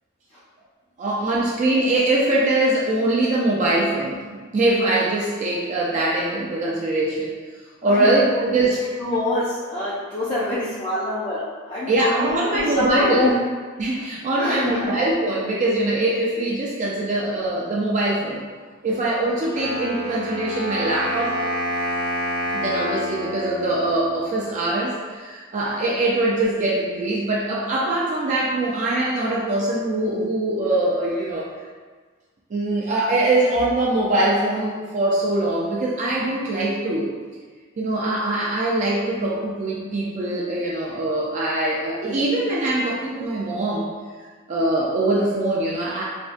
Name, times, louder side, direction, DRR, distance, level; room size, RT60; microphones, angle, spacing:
voice 1, 1.0-7.3 7.8-8.8 11.9-13.3 13.8-18.4 18.8-21.4 22.5-31.5 32.5-37.1 37.8-43.9 44.5-46.0, right 2 dB, 35° right, -5 dB, 0.4 m, -22 dB
voice 2, 7.9-13.3 14.4-14.9, left 1 dB, 25° left, -10 dB, 0.5 m, -26 dB
Wind instrument woodwind instrument, 19.5-24.5, left 1 dB, 55° right, 0.9 m, -28 dB
3.4 x 2.1 x 2.5 m, 1.5 s
head